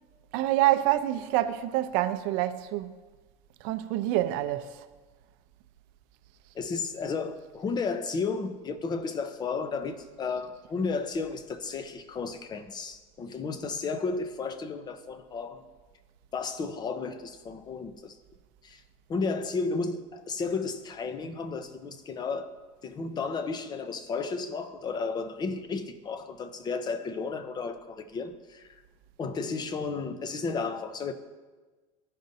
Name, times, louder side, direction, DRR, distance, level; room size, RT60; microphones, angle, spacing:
voice 1, 0.3-2.9 3.6-4.9, right 14 dB, 70° right, 0.6 m, -27 dB
voice 2, 6.5-15.7 16.3-18.2 18.6-18.8 19.1-22.5 22.8-28.8 29.2-31.1, left 4 dB, 25° left, 0.6 m, -33 dB
14.5 x 5.2 x 2.7 m
supercardioid pair, 130°, 16 cm